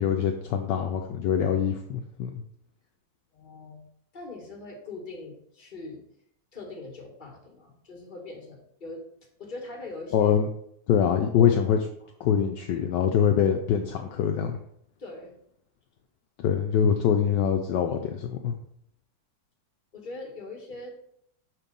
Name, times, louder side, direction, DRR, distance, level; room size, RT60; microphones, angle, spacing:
voice 1, 0.0-2.4 10.1-10.5 10.9-11.8 12.2-14.6 16.4-18.5, left 8 dB, 70° left, 4 dB, 1.2 m, -24 dB
voice 2, 3.3-3.8 4.1-6.0 6.5-9.0 9.4-10.3 11.4-11.6 15.0-15.4 19.9-21.1, left 2 dB, 25° left, -1 dB, 1.7 m, -41 dB
6.5 x 4.5 x 5.2 m, 0.71 s
omnidirectional pair, 2.1 m